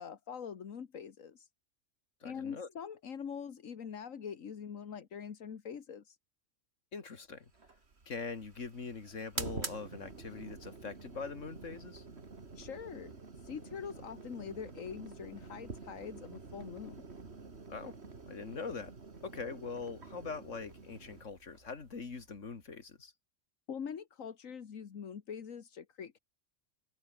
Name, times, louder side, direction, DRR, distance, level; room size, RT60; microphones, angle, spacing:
voice 1, 0.0-1.5 2.2-6.2 12.6-13.2 13.4-17.0 23.7-26.2, left 7 dB, 80° left, 1.8 m, -44 dB
voice 2, 2.2-2.7 6.9-7.5 8.1-12.0 17.7-18.0 18.3-18.9 19.2-23.1, left 4 dB, 65° left, 2.6 m, -42 dB
sound 1, 7.5-22.8, right 4 dB, 55° right, 2.6 m, -48 dB
omnidirectional pair, 1.4 m